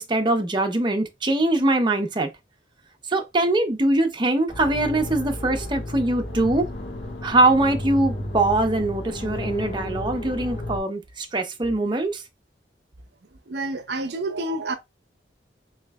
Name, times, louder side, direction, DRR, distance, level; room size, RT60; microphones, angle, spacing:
voice 1, 0.0-2.3 3.1-6.7 7.2-12.2, right 2 dB, 25° right, 0.6 m, -22 dB
sound 1, 4.5-10.8, left 1 dB, 70° left, 1.3 m, -32 dB
voice 2, 13.5-14.8, right 2 dB, 65° right, 0.5 m, -28 dB
4.0 x 3.2 x 2.2 m
head